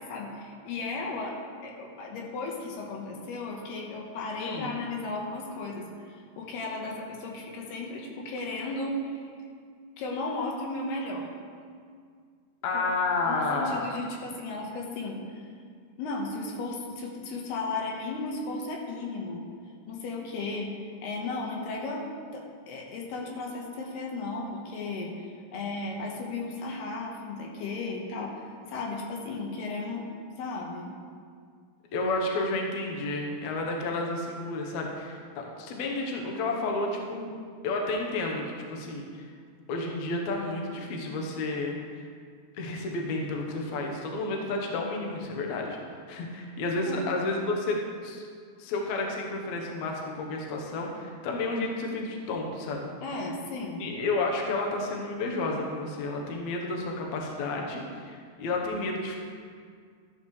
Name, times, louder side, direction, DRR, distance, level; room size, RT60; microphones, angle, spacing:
voice 1, 0.0-9.2 10.0-11.3 12.7-12.9 13.3-15.5 16.0-19.4 19.9-22.1 22.3-25.1 25.5-30.1 30.4-30.9 46.9-47.1 53.0-53.9, left 3 dB, 85° left, -1 dB, 3.4 m, -35 dB
voice 2, 4.4-4.7 12.6-13.9 31.9-37.4 37.6-39.2 39.7-41.8 42.5-45.8 46.1-48.2 48.6-52.9 53.8-59.2, left 2 dB, 65° left, 0 dB, 1.9 m, -31 dB
13.5 x 10.5 x 3.3 m, 2.1 s
omnidirectional pair, 4.6 m